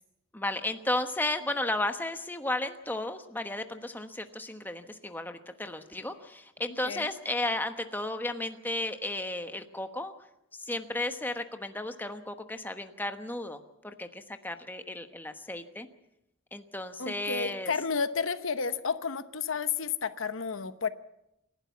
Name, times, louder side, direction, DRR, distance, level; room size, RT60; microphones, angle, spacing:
voice 1, 0.3-10.1 10.6-15.9 16.5-17.7, left 2 dB, 10° left, 7 dB, 1.1 m, -34 dB
voice 2, 17.0-20.9, left 5 dB, 75° left, 12 dB, 0.9 m, -31 dB
28.5 x 11.5 x 8.4 m, 0.86 s
head